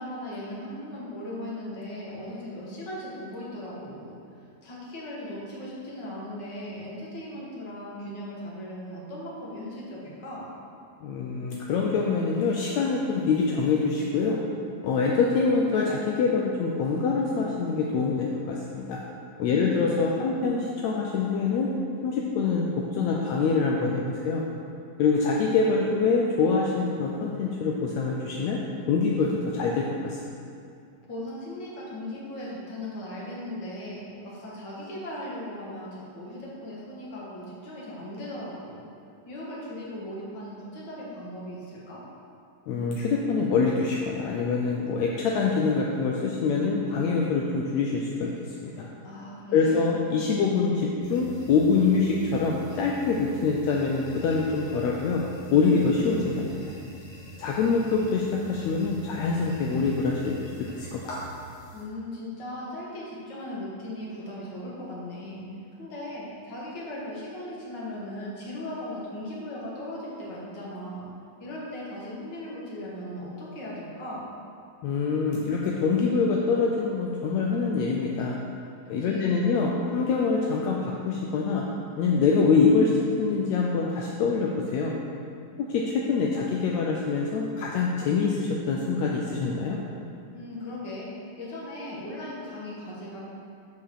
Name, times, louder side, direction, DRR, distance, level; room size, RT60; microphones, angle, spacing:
voice 1, 0.0-4.1 4.6-10.5 19.5-20.4 31.1-38.9 39.3-42.0 49.0-50.1 61.7-65.4 65.8-71.0 71.4-74.3 78.8-79.6 90.3-91.1 91.4-93.2, left 1 dB, 35° left, -5 dB, 2.2 m, -38 dB
voice 2, 11.0-14.4 14.8-19.0 19.4-21.7 22.0-24.4 25.0-28.6 28.9-30.2 42.7-48.3 48.6-48.9 49.5-55.2 55.5-56.6 57.4-61.0 74.8-78.4 78.9-81.7 82.0-85.0 85.6-89.8, left 4 dB, 75° left, -1 dB, 1.6 m, -25 dB
sound 1, 51.0-61.8, equal, 60° left, 3.3 m, -44 dB
10.5 x 5.2 x 6.6 m, 2.4 s
omnidirectional pair, 3.9 m